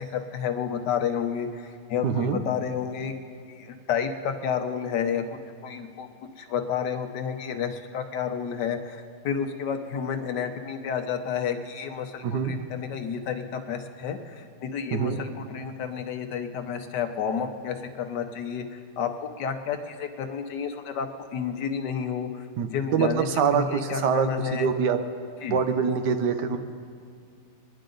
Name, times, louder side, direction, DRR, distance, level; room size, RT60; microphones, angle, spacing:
voice 1, 0.0-3.1 3.5-5.2 5.6-6.1 6.4-19.1 19.4-22.5 22.7-23.3 23.5-24.7 25.4-25.6, left 7 dB, 80° left, 5 dB, 1.5 m, -30 dB
voice 2, 2.0-2.4 12.2-12.5 14.9-15.2 22.6-25.0 25.5-26.6, right 6 dB, 80° right, 8 dB, 1.4 m, -25 dB
22.5 x 10.0 x 3.9 m, 2.2 s
omnidirectional pair, 1.8 m